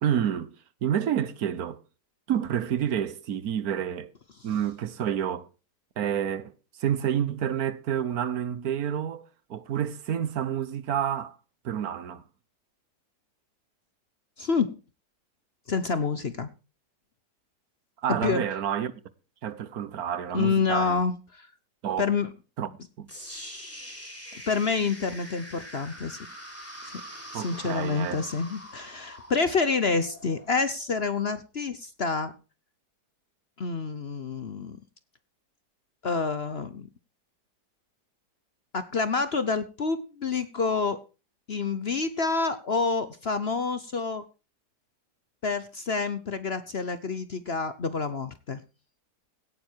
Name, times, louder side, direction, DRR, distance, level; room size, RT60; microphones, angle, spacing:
voice 1, 0.0-0.5 0.8-1.8 2.3-4.1 4.4-5.5 6.0-6.5 6.8-9.2 9.5-11.4 11.6-12.2 18.0-18.9 19.4-21.0 21.8-22.1 22.6-22.7 23.0-23.1 27.3-28.3, right 9 dB, 65° right, 1.4 m, -29 dB
voice 2, 14.4-14.8 15.7-16.5 18.2-18.4 20.3-21.5 22.0-22.3 24.5-26.2 27.3-32.3 33.6-34.8 36.0-36.9 38.7-41.0 41.5-44.2 45.4-48.6, left 4 dB, 45° left, 1.0 m, -28 dB
sound 1, 23.1-31.1, equal, 10° left, 4.6 m, -44 dB
17.0 x 9.6 x 4.5 m
omnidirectional pair, 1.8 m